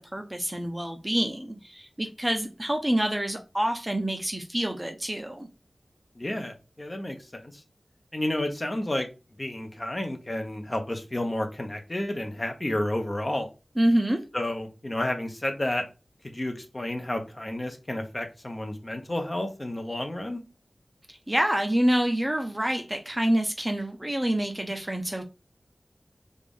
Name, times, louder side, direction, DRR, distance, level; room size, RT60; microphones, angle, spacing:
voice 1, 0.0-5.5 13.8-14.2 21.3-25.2, right 1 dB, 15° right, 0.5 m, -27 dB
voice 2, 6.2-7.6 8.1-9.1 9.4-13.5 14.3-15.8 16.2-20.4, left 1 dB, 30° left, 0.7 m, -31 dB
3.3 x 2.5 x 3.6 m
wide cardioid pair, 80°, 0 cm